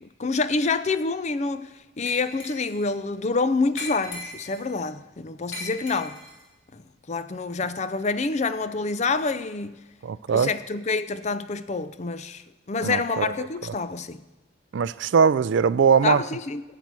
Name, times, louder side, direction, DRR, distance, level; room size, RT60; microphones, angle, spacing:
voice 1, 0.0-6.2 6.7-6.8 7.1-9.8 10.3-14.2 16.0-16.6, left 4 dB, 35° left, 0.4 m, -27 dB
Glass, 2.1-2.8 3.8-4.7 5.5-6.4, left 3 dB, 60° left, 3.5 m, -38 dB
voice 2, 10.0-10.5 12.8-13.3 14.7-16.2, right 6 dB, 60° right, 0.3 m, -21 dB
10.5 x 7.4 x 8.2 m
head